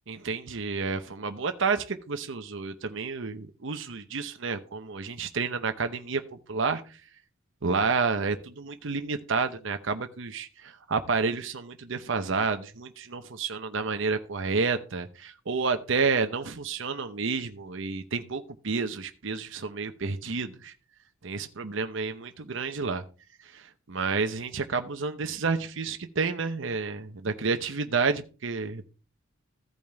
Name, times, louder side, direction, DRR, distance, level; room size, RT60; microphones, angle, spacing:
voice 1, 0.1-6.2 6.5-6.8 7.6-20.7 21.2-23.0 23.5-28.9, right 4 dB, 65° right, 7 dB, 0.8 m, -30 dB
15.0 x 5.4 x 3.4 m, 0.35 s
head